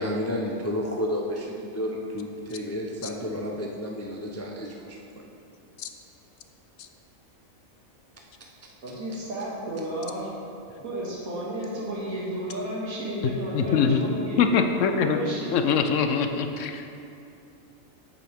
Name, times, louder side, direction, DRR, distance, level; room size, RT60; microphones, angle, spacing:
voice 1, 0.0-1.5 1.7-5.3, left 1 dB, 25° left, -1 dB, 0.3 m, -31 dB
voice 2, 8.8-10.3 10.8-14.5 14.9-15.6, right 1 dB, 85° right, -6 dB, 2.3 m, -32 dB
voice 3, 13.5-14.0 14.4-15.2 15.5-16.9, left 6 dB, 70° left, 7 dB, 0.9 m, -23 dB
8.7 x 8.3 x 3.5 m, 2.6 s
omnidirectional pair, 1.4 m